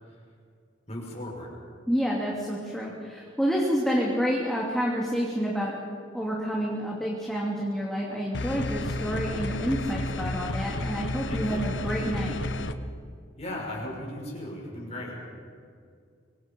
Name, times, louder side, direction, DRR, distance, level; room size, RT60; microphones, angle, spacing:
voice 1, 0.9-1.5 11.3-11.7 13.4-15.2, left 1 dB, 30° left, -2 dB, 5.9 m, -36 dB
voice 2, 1.9-5.7 6.1-12.4, equal, ahead, -4 dB, 2.9 m, -28 dB
sound 1, 8.3-12.7, left 1 dB, 65° left, 1.1 m, -31 dB
27.0 x 24.5 x 5.5 m, 2.3 s
head